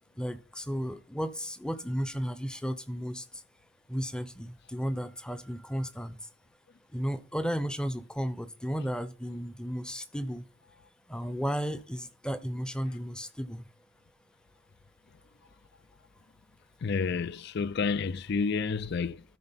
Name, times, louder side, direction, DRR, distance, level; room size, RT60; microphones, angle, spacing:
voice 1, 0.2-3.2 3.9-6.2 6.9-10.5 11.1-13.7, equal, 5° left, 0.6 m, -34 dB
voice 2, 16.8-19.2, left 5 dB, 50° left, 0.4 m, -30 dB
13.0 x 4.4 x 5.6 m
head